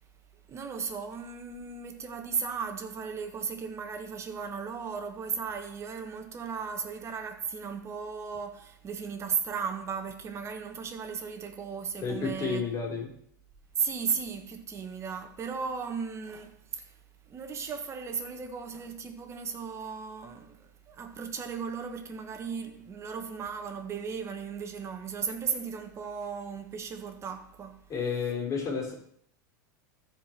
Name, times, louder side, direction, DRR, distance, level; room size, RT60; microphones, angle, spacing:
voice 1, 0.5-12.6 13.7-17.0 17.3-27.8, right 6 dB, 25° right, 1.5 m, -36 dB
voice 2, 12.0-13.1 27.9-28.9, left 5 dB, 30° left, 4.0 m, -31 dB
14.0 x 5.0 x 4.5 m
hypercardioid pair, 110°, 10 cm